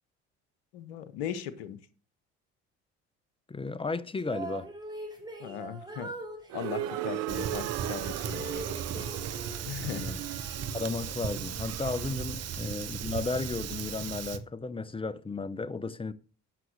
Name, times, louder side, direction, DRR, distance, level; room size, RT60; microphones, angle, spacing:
voice 1, 0.7-1.8 5.4-6.1 6.5-8.6 9.7-10.1, left 10 dB, 80° left, 0.9 m, -38 dB
voice 2, 3.5-4.7 9.0-9.1 9.8-10.2 10.7-16.1, left 3 dB, 15° left, 0.8 m, -34 dB
sound 1, 4.2-7.1 7.7-9.7 10.0-11.1, right 2 dB, 10° right, 5.0 m, -42 dB
sound 2, 6.5-12.4, right 15 dB, 70° right, 0.6 m, -38 dB
Fire, 7.3-14.4, right 7 dB, 50° right, 1.2 m, -36 dB
9.2 x 6.2 x 6.4 m
hypercardioid pair, 60°, 33 cm